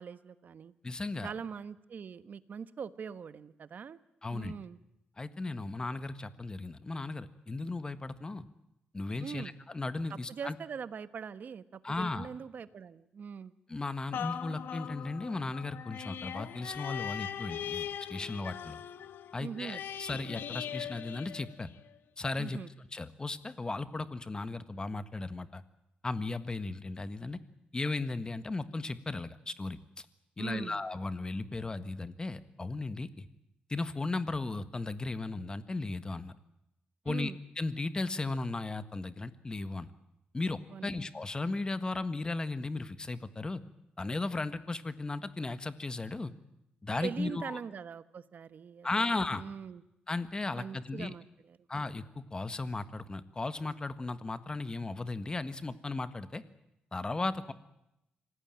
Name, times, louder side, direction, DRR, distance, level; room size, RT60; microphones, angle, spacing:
voice 1, 0.0-0.7 1.2-4.0 4.3-4.8 9.2-9.5 10.3-13.5 19.4-19.8 22.4-22.7 30.4-30.8 37.0-37.4 40.7-41.0 47.0-48.9 49.3-49.8 50.5-51.6, right 6 dB, 55° right, 14 dB, 1.2 m, -42 dB
voice 2, 0.8-1.3 4.2-4.5 5.2-8.5 8.9-10.5 11.8-12.3 13.7-18.8 19.3-21.7 22.2-22.6 22.9-25.6 26.0-27.4 27.7-29.8 30.4-33.3 33.7-36.3 37.0-37.3 37.6-39.9 40.3-43.6 44.0-46.3 46.8-47.6 48.8-49.4 50.1-51.1 51.7-56.4 56.9-57.5, left 3 dB, 25° left, 13 dB, 1.6 m, -36 dB
sound 1, 14.1-22.0 22.5-22.6, left 9 dB, 85° left, 1.2 m, -40 dB
26.0 x 18.0 x 9.1 m, 0.85 s
cardioid pair, 110°, 3 cm